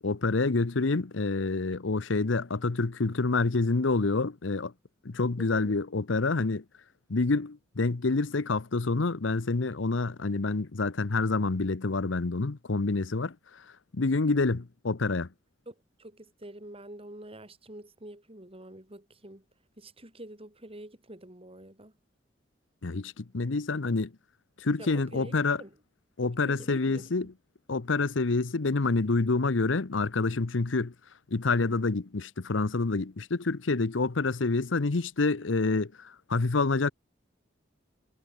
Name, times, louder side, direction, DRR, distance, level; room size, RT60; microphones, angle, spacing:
voice 1, 0.0-4.7 5.0-6.6 7.1-13.3 13.9-15.3 22.8-24.1 24.6-25.6 26.2-27.3 27.7-30.9 31.3-36.9, left 3 dB, 75° left, 0.9 m, -27 dB
voice 2, 5.4-5.8 15.7-19.5 19.8-21.9 24.8-25.8 26.2-27.3, right 1 dB, 30° right, 5.2 m, -47 dB
head